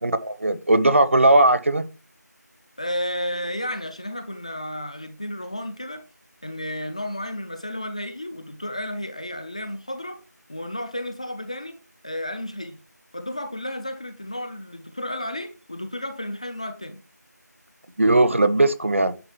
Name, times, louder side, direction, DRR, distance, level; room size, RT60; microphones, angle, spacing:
voice 1, 0.0-1.9 18.0-19.2, right 2 dB, 45° right, 0.9 m, -18 dB
voice 2, 2.8-6.0 6.4-10.2 10.5-11.8 12.0-12.8 13.1-17.0, left 1 dB, 20° left, 0.6 m, -32 dB
10.0 x 3.7 x 6.8 m
figure-of-eight pair, 170°, 10 cm